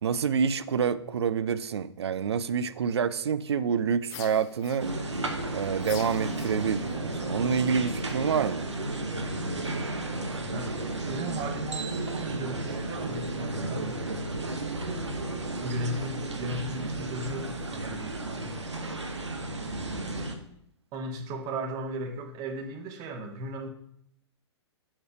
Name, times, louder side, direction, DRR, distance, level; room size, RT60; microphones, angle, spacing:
voice 1, 0.0-4.9 5.5-8.7, right 6 dB, 65° right, 0.4 m, -27 dB
sound 1, 4.0-5.2 5.8-7.0, left 11 dB, 25° left, 0.3 m, -45 dB
sound 2, 4.8-20.4, right 2 dB, 80° right, 0.9 m, -33 dB
voice 2, 10.5-14.0 15.6-18.5 20.9-23.7, right 1 dB, 25° right, 0.9 m, -36 dB
7.2 x 3.2 x 5.0 m
figure-of-eight pair, 115°, 15 cm